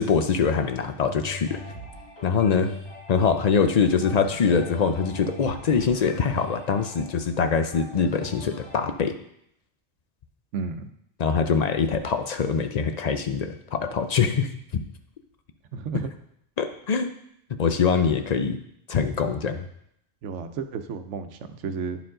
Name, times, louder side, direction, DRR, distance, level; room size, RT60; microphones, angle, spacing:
voice 1, 0.0-1.6 2.2-2.7 3.1-9.1 11.2-14.8 16.6-17.1 17.6-18.6 18.9-19.7, left 6 dB, 50° left, 8 dB, 0.5 m, -23 dB
sound 1, 1.0-8.9, left 1 dB, 75° left, 3.8 m, -41 dB
voice 2, 10.5-10.9 15.7-16.1 20.2-22.0, right 5 dB, 90° right, 9 dB, 1.0 m, -32 dB
10.0 x 4.6 x 3.8 m, 0.73 s
omnidirectional pair, 1.2 m